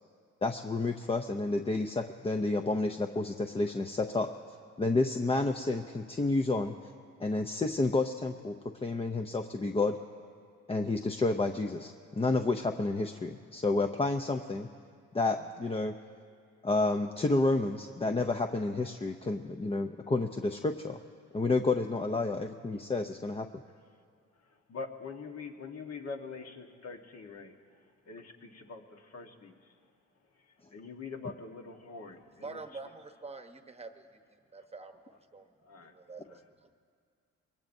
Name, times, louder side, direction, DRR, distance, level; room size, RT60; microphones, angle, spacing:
voice 1, 0.4-4.3 4.8-6.9 7.2-8.5 8.8-10.0 10.7-14.7 15.1-15.9 16.6-21.0 21.3-23.5, left 3 dB, 20° left, 5 dB, 0.6 m, -30 dB
voice 2, 24.4-29.8 30.3-32.6 35.6-35.9 36.2-36.4, left 4 dB, 55° left, 4 dB, 1.4 m, -45 dB
voice 3, 32.4-34.1 34.5-35.5 35.8-36.8, right 3 dB, 20° right, 6 dB, 1.0 m, -46 dB
23.5 x 19.0 x 2.7 m, 2.2 s
cardioid pair, 90°, 30 cm